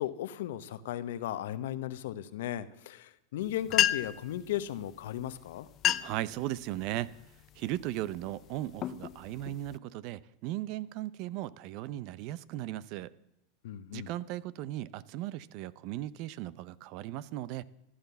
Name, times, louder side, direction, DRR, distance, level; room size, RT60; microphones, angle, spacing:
voice 1, 0.0-5.7 13.6-14.1, left 12 dB, 75° left, 1.0 m, -36 dB
sound 1, 3.4-3.5 3.7-4.3 5.2-5.3 5.7-6.3 6.8-7.1 7.7-8.0 8.5-9.8, left 12 dB, 40° left, 0.5 m, -30 dB
voice 2, 6.0-7.1 7.6-13.1 13.9-17.6, right 14 dB, 55° right, 0.6 m, -37 dB
14.5 x 11.5 x 7.0 m
supercardioid pair, 125°, 0 cm